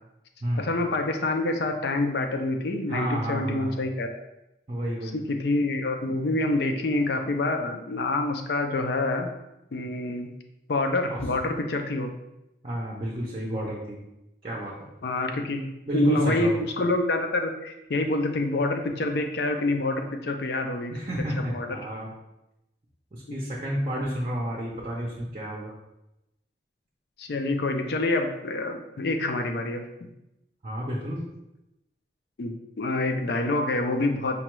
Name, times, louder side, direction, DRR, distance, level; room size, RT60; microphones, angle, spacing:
voice 1, 0.6-4.2 5.0-9.3 9.7-10.3 10.7-12.1 15.0-15.7 15.9-20.9 21.4-21.7 23.3-23.5 27.2-29.8 32.4-34.4, left 2 dB, 70° left, 5 dB, 0.4 m, -27 dB
voice 2, 2.9-3.8 4.7-5.2 11.1-11.2 12.6-14.0 14.4-14.7 15.9-16.6 20.9-22.1 23.1-25.7 30.6-31.3, equal, 30° right, -3 dB, 0.5 m, -30 dB
5.1 x 2.3 x 3.0 m, 0.91 s
head